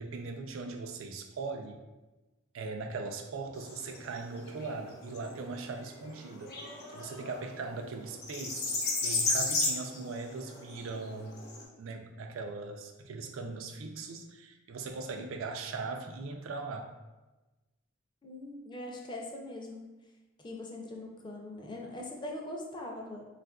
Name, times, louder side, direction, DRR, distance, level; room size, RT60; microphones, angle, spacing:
voice 1, 0.0-1.8 2.5-6.6 6.9-8.6 9.0-11.4 11.8-16.9, right 3 dB, 80° right, 4 dB, 0.4 m, -39 dB
sound 1, 3.6-11.6, left 3 dB, 55° left, 0.7 m, -35 dB
voice 2, 18.2-19.9 20.4-23.2, left 1 dB, 25° left, 0 dB, 0.4 m, -41 dB
4.1 x 2.4 x 2.2 m, 1.1 s
head